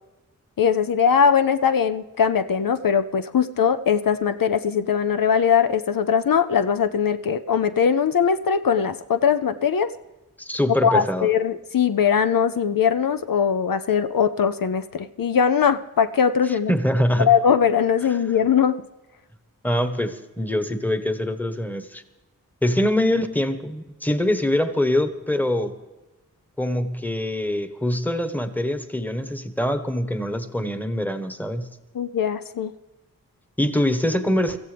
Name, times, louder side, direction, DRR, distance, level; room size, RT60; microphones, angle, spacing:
voice 1, 0.6-9.9 10.7-16.7 17.2-18.8 31.9-32.7, left 7 dB, 70° left, 10 dB, 0.6 m, -20 dB
voice 2, 10.4-11.3 16.5-17.3 19.6-22.0 22.6-25.7 26.6-31.7 33.6-34.6, left 1 dB, 5° left, 9 dB, 1.3 m, -24 dB
24.0 x 15.0 x 3.4 m, 1.1 s
wide cardioid pair, 60°, 35 cm